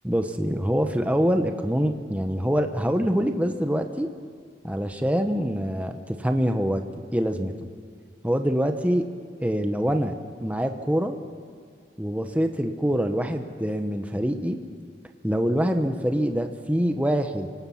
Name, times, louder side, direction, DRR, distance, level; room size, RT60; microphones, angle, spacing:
voice 1, 0.0-4.1 4.6-6.8 7.1-7.5 8.2-9.0 9.4-10.1 10.4-11.2 12.0-14.6 15.2-17.5, equal, 10° right, 6 dB, 1.0 m, -25 dB
27.0 x 19.0 x 5.8 m, 2.1 s
head